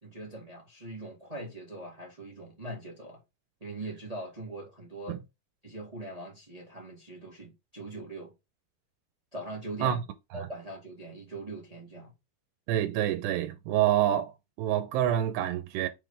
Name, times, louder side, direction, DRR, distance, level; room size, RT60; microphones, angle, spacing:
voice 1, 0.0-3.2 3.6-5.2 5.6-8.3 9.3-10.0 10.3-12.1, right 2 dB, 45° right, 0.4 m, -41 dB
voice 2, 12.7-14.3 14.6-15.9, right 11 dB, 85° right, 2.8 m, -27 dB
7.0 x 3.4 x 5.5 m
omnidirectional pair, 4.7 m